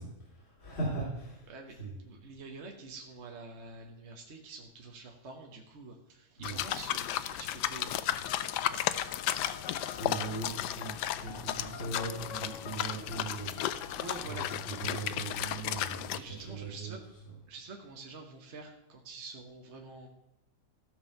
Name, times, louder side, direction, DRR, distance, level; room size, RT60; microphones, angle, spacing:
voice 1, 0.0-1.5 1.8-2.0 6.4-6.6 9.8-17.4, right 3 dB, 40° left, -6 dB, 3.3 m, -40 dB
voice 2, 1.5-8.1 8.4-9.2 9.7-10.3 13.9-14.5 16.1-17.0 17.5-20.1, right 3 dB, 45° right, 2 dB, 1.4 m, -47 dB
sound 1, 6.4-16.2, left 12 dB, 85° left, 1.2 m, -34 dB
sound 2, 8.3-15.5, left 6 dB, 60° left, 0.9 m, -48 dB
14.5 x 5.5 x 6.6 m, 0.92 s
omnidirectional pair, 1.8 m